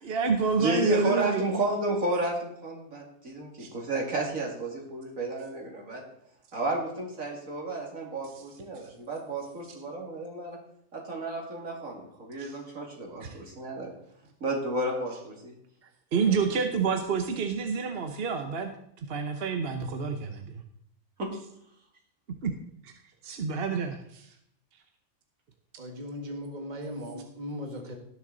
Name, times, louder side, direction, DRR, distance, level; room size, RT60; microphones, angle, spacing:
voice 1, 0.0-1.4 3.6-3.7 12.4-12.6 13.2-13.3 16.1-18.7 19.1-20.6 22.4-22.5 22.8-22.9 23.2-24.3, right 5 dB, 50° right, 5 dB, 1.0 m, -28 dB
voice 2, 0.6-6.0 6.5-10.6 10.9-13.9 14.4-15.5 16.1-16.3 21.2-21.3, right 2 dB, 75° right, 0 dB, 2.9 m, -32 dB
voice 3, 25.8-27.9, left 1 dB, 35° right, 2 dB, 1.7 m, -38 dB
18.0 x 6.6 x 3.9 m, 0.71 s
omnidirectional pair, 1.4 m